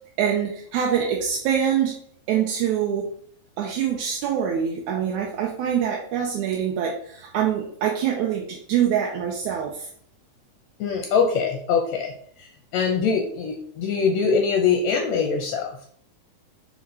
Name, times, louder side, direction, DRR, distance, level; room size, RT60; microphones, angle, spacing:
voice 1, 0.2-1.9 2.3-3.1 3.6-9.9, right 8 dB, 80° right, -1 dB, 2.1 m, -24 dB
voice 2, 10.8-12.1 12.4-12.5 12.7-15.9, left 5 dB, 75° left, 2 dB, 1.8 m, -23 dB
6.0 x 4.3 x 4.2 m, 0.62 s
omnidirectional pair, 3.6 m